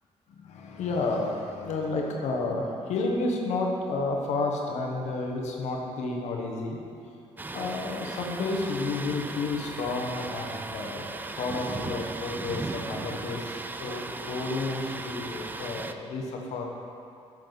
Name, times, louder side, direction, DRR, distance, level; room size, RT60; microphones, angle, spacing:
voice 1, 0.3-6.8 7.5-16.7, left 3 dB, 80° left, 0 dB, 1.1 m, -31 dB
Thunder, 7.4-15.9, right 3 dB, 15° right, 0.4 m, -37 dB
9.0 x 6.2 x 4.0 m, 2.5 s
cardioid pair, 85°, 11 cm